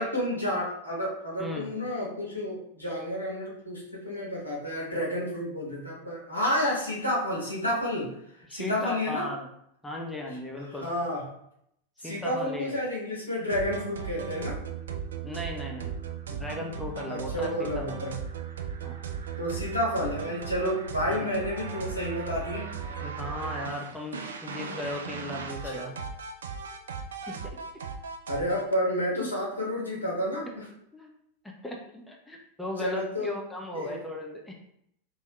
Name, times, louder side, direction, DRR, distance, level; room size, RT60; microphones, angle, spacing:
voice 1, 0.0-9.3 10.8-11.2 12.0-14.6 17.1-18.2 19.4-22.7 25.6-25.9 28.3-30.7 32.8-33.3 33.7-34.0, equal, 85° left, -5 dB, 1.3 m, -30 dB
voice 2, 8.5-9.5 9.8-10.9 12.0-12.7 15.2-15.9 16.3-17.9 18.8-19.0 21.1-21.3 23.0-25.9 27.3-27.6 29.2-29.3 30.9-31.1 31.6-34.5, left 1 dB, 5° left, 0 dB, 0.6 m, -36 dB
sound 1, 13.5-28.8, right 6 dB, 65° right, 0.4 m, -37 dB
4.3 x 3.5 x 2.3 m, 0.75 s
figure-of-eight pair, 90°, 0 cm